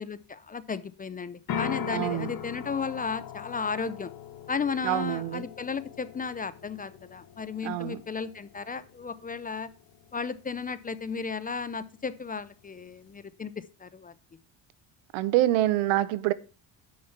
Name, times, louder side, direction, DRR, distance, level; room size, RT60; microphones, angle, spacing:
voice 1, 0.0-4.1 4.5-9.7 10.1-14.1, left 5 dB, 20° left, 0.4 m, -34 dB
sound 1, 1.5-13.2, left 8 dB, 50° left, 1.5 m, -41 dB
voice 2, 1.9-2.3 4.8-5.5 7.6-8.0 15.1-16.3, right 14 dB, 90° right, 0.8 m, -26 dB
7.1 x 6.3 x 5.7 m
cardioid pair, 110°, 46 cm